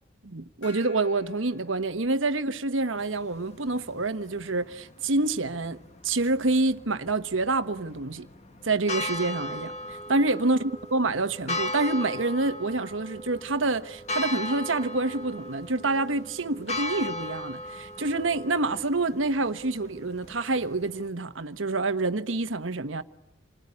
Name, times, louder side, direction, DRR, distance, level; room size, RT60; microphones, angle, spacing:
voice 1, 0.2-5.8 6.0-8.3 8.6-10.6 10.9-23.0, right 3 dB, 85° right, 1.3 m, -27 dB
Gong, 0.6-2.7, left 1 dB, 80° left, 3.9 m, -50 dB
sound 1, 3.0-21.1, left 1 dB, 35° left, 1.7 m, -38 dB
28.5 x 20.5 x 9.8 m
head